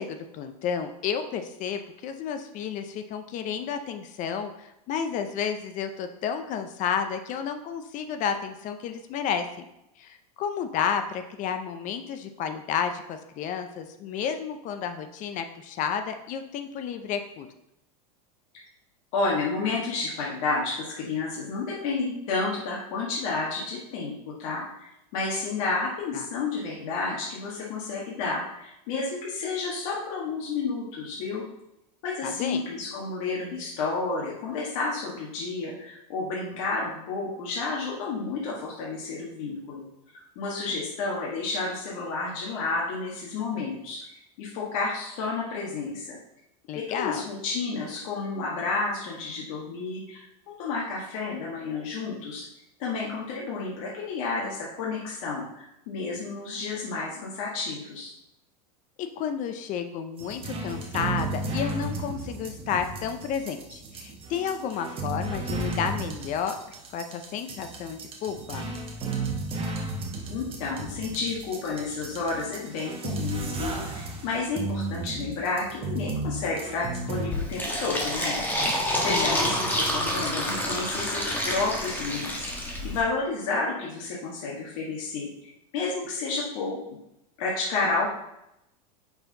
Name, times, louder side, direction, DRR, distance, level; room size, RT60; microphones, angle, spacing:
voice 1, 0.0-9.7 10.0-17.5 26.1-26.3 32.2-32.6 46.7-47.2 59.0-66.6 66.9-68.7 79.0-79.5, left 7 dB, 40° left, 8 dB, 0.6 m, -31 dB
voice 2, 19.1-24.6 25.1-31.4 32.0-39.8 40.1-44.0 44.4-46.2 46.7-50.3 50.6-52.4 52.8-58.1 70.3-78.4 78.9-82.5 82.8-85.3 85.7-86.8 87.4-88.1, left 3 dB, 60° left, -4 dB, 1.6 m, -31 dB
sound 1, 60.2-77.3, right 2 dB, 30° right, 1.3 m, -34 dB
Fill (with liquid), 77.3-83.0, left 1 dB, 10° left, 1.3 m, -28 dB
5.6 x 4.5 x 3.9 m, 0.84 s
supercardioid pair, 125°, 20 cm